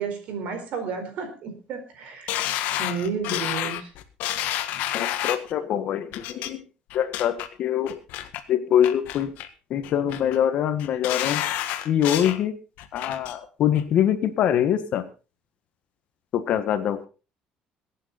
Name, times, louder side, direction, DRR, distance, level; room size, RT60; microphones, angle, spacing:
voice 1, 0.0-2.5 2.8-3.9, right 5 dB, 50° right, 7 dB, 4.6 m, -32 dB
sound 1, 2.3-5.5 6.1-6.5 6.9-7.5 7.9-8.4 8.8-9.5 9.8-10.4 10.8-12.4 12.8-13.3 13.7-13.8, left 13 dB, 70° left, 1.7 m, -29 dB
voice 2, 4.9-6.6 6.9-8.0 8.5-9.3 9.7-11.4 11.8-12.5 12.9-15.0 16.3-17.1, left 10 dB, 45° left, 10 dB, 1.5 m, -24 dB
22.0 x 9.3 x 4.2 m, 0.33 s
cardioid pair, 175°, 3 cm